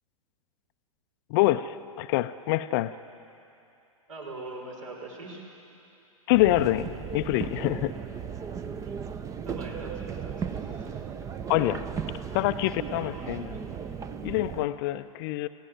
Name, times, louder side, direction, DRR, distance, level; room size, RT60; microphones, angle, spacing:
voice 1, 1.3-3.0 6.3-8.0 11.5-11.9 12.3-13.6 14.2-15.5, left 16 dB, 40° left, 12 dB, 0.6 m, -26 dB
voice 2, 4.1-5.4 9.4-11.0, right 2 dB, 65° right, 0 dB, 5.4 m, -41 dB
sound 1, 6.3-14.7, right 7 dB, 15° right, 0.8 m, -36 dB
29.0 x 17.0 x 7.8 m, 2.8 s
figure-of-eight pair, 100°, 18 cm